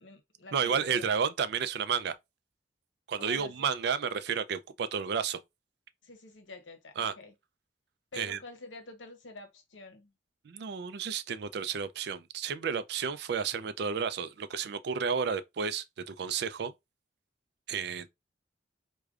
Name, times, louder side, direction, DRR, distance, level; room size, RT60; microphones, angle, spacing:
voice 1, 0.0-1.2 3.2-3.7 6.0-7.3 8.1-10.1, left 3 dB, 80° left, 0.9 m, -47 dB
voice 2, 0.5-2.2 3.1-5.4 7.0-7.1 8.1-8.4 10.4-16.7 17.7-18.1, right 6 dB, 60° right, 0.4 m, -32 dB
4.8 x 2.2 x 2.4 m
head